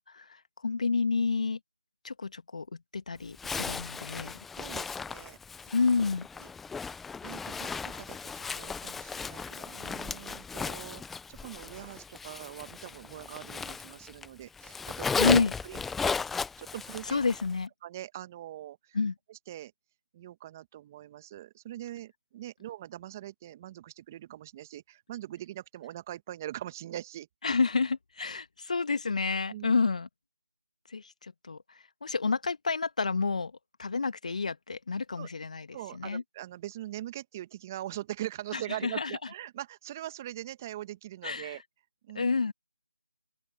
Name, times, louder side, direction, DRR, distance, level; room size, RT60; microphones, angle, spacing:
voice 1, 0.0-1.6 2.0-4.4 5.7-6.3 15.1-15.5 17.1-17.7 18.9-19.1 27.4-30.1 30.9-36.2 38.5-39.1 41.2-41.6 42.1-42.5, left 4 dB, 50° left, 2.1 m, -29 dB
Zipper (clothing), 3.4-14.3 14.6-17.5, left 5 dB, 5° left, 0.7 m, -36 dB
voice 2, 4.5-5.4 5.6-5.7 6.4-6.5 7.2-15.3 15.6-16.2 16.6-17.2 17.8-19.0 19.3-19.7 20.1-27.3 29.5-29.7 35.2-35.3 35.7-41.6 42.0-42.3, right 13 dB, 20° right, 1.5 m, -42 dB
open air
figure-of-eight pair, 165°, 5 cm